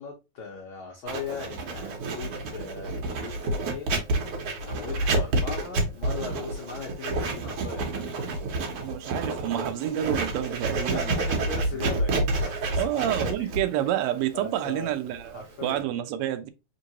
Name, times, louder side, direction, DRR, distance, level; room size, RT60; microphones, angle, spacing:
voice 1, 0.0-8.1 8.4-8.9 10.9-13.5 13.8-13.9 14.3-15.9, left 5 dB, 85° left, 1.1 m, -39 dB
Writing, 1.1-15.8, right 2 dB, 65° right, 1.6 m, -29 dB
voice 2, 8.8-11.4 12.8-16.5, right 12 dB, 80° right, 1.7 m, -29 dB
3.8 x 3.6 x 2.8 m
omnidirectional pair, 3.4 m